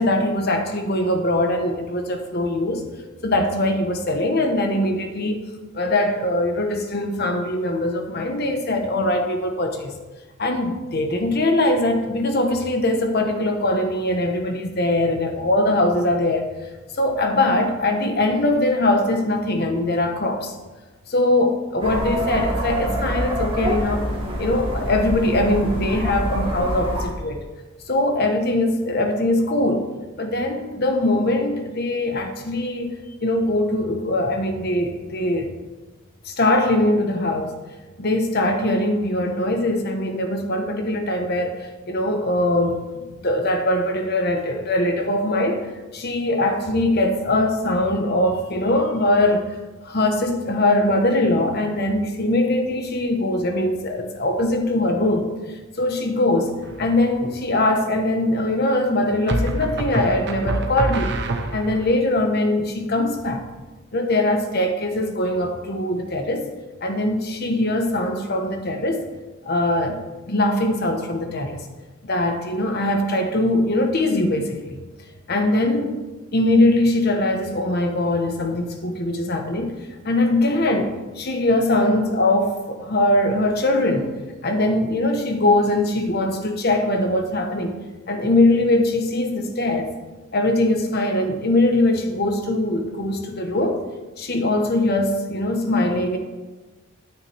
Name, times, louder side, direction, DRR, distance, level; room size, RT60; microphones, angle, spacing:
voice 1, 0.0-2.8 3.2-5.4 5.7-9.9 10.4-16.5 17.0-20.5 21.1-24.0 24.4-27.4 27.9-29.9 30.2-35.5 36.2-37.6 38.0-41.5 41.9-45.6 45.9-49.5 49.8-55.3 55.8-56.5 56.8-61.1 61.5-63.4 63.9-66.5 66.8-69.1 69.5-70.0 70.3-71.6 72.0-74.8 75.3-76.0 76.3-79.7 80.0-84.1 84.4-87.7 88.1-90.0 90.3-93.8 94.2-96.2, left 1 dB, 50° left, 4 dB, 1.1 m, -21 dB
sound 1, 21.8-27.1, right 1 dB, 25° right, 1.6 m, -26 dB
sound 2, 56.6-57.2 59.3-61.9, right 1 dB, 55° right, 0.9 m, -26 dB
9.6 x 9.4 x 3.4 m, 1.2 s
head